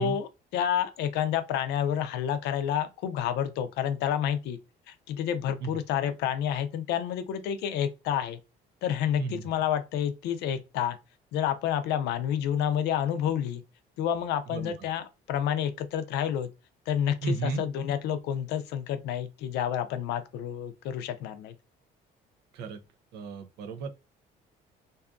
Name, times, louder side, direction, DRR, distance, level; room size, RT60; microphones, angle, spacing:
voice 1, 0.0-4.6 4.9-8.4 8.8-11.0 11.3-13.6 14.0-16.5 16.9-21.5, left 9 dB, 85° left, 0.5 m, -29 dB
voice 2, 17.2-17.6 22.5-22.8 23.1-23.9, right 4 dB, 80° right, 0.5 m, -33 dB
2.6 x 2.3 x 2.4 m
cardioid pair, 110°, 17 cm